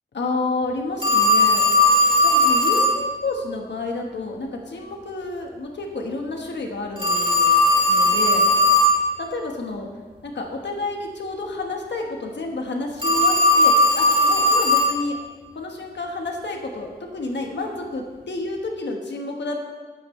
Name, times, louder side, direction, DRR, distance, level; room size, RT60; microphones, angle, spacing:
voice 1, 0.1-1.7 2.2-7.5 7.8-8.5 9.2-9.9 10.2-15.2 15.5-19.6, left 3 dB, 85° left, 1 dB, 1.3 m, -30 dB
Telephone, 1.0-3.0 7.0-9.0 13.0-15.0, left 1 dB, 30° right, 2.0 m, -17 dB
13.5 x 9.5 x 3.2 m, 1.4 s
wide cardioid pair, 125°, 18 cm